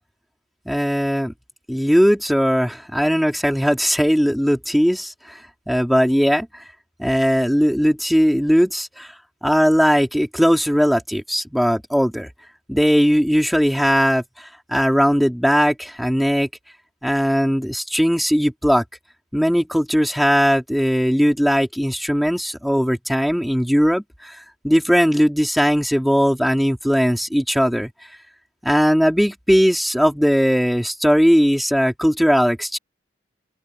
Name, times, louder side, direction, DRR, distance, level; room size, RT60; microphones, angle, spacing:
voice 1, 0.7-1.3 1.7-5.4 5.7-6.6 7.0-9.1 9.4-12.3 12.7-16.5 17.0-18.8 19.3-24.4 24.6-27.9 28.6-32.8, equal, ahead, 3.6 m, -18 dB
open air
head